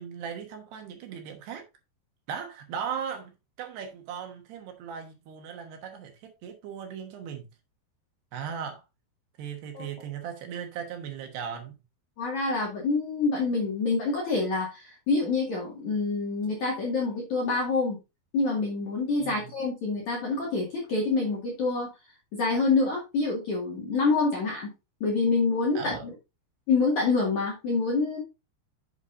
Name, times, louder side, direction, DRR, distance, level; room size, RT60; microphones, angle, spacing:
voice 1, 0.0-1.6 2.3-3.3 3.6-7.5 8.3-8.8 9.4-11.8 19.2-19.5 25.7-26.1, right 7 dB, 70° right, 3.1 m, -37 dB
voice 2, 12.2-18.0 18.3-21.9 22.3-24.7 25.0-25.9 26.7-28.2, left 3 dB, 50° left, 2.9 m, -26 dB
8.4 x 8.1 x 2.6 m
omnidirectional pair, 5.3 m